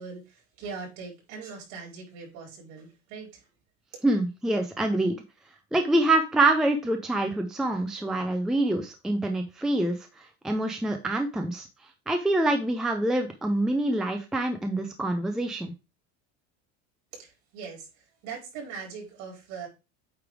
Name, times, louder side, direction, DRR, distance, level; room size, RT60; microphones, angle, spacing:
voice 1, 0.0-3.3 17.1-17.9 18.2-19.7, right 5 dB, 60° right, 4.4 m, -40 dB
voice 2, 4.0-5.2 5.7-10.0 10.4-11.7 12.1-15.7, right 2 dB, ahead, 0.5 m, -25 dB
8.7 x 3.4 x 4.8 m
cardioid pair, 175°, 32 cm